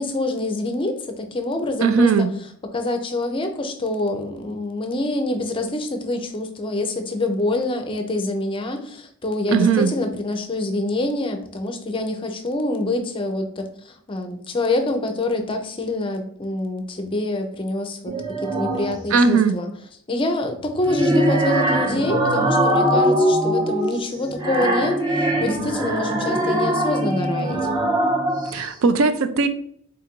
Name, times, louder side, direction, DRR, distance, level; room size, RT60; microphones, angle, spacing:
voice 1, 0.0-2.1 2.7-18.1 18.4-19.7 20.1-27.6, left 2 dB, 25° left, 5 dB, 0.5 m, -26 dB
voice 2, 1.8-2.3 9.5-9.9 19.1-19.6 28.5-29.5, right 5 dB, 70° right, 10 dB, 0.4 m, -18 dB
sound 1, 18.1-19.0 20.6-28.7, right 1 dB, 20° right, 0.6 m, -22 dB
3.8 x 2.5 x 4.3 m, 0.64 s
head